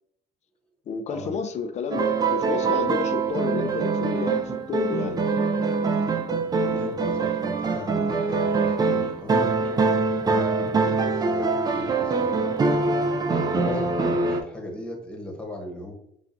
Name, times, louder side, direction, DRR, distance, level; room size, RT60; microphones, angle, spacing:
voice 1, 0.9-5.2 7.1-7.2 13.5-13.9, left 5 dB, 45° left, 0.4 m, -31 dB
sound 1, 1.9-14.4, right 4 dB, 25° right, 0.4 m, -24 dB
voice 2, 6.6-12.5 13.3-13.8 14.3-15.9, left 1 dB, 5° left, 1.1 m, -40 dB
5.8 x 2.3 x 2.5 m
cardioid pair, 110°, 17 cm